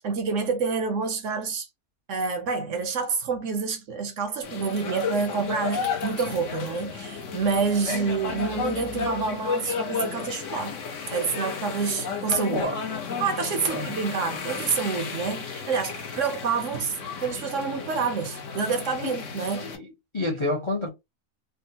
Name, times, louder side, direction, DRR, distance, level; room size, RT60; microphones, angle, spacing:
voice 1, 0.0-1.7 2.1-10.7 11.1-12.6 13.2-19.7, right 5 dB, 65° right, 0.9 m, -28 dB
sound 1, 4.4-19.8, left 5 dB, 60° left, 1.0 m, -33 dB
voice 2, 19.6-20.9, left 2 dB, 30° left, 0.5 m, -29 dB
3.5 x 2.1 x 2.7 m
omnidirectional pair, 1.5 m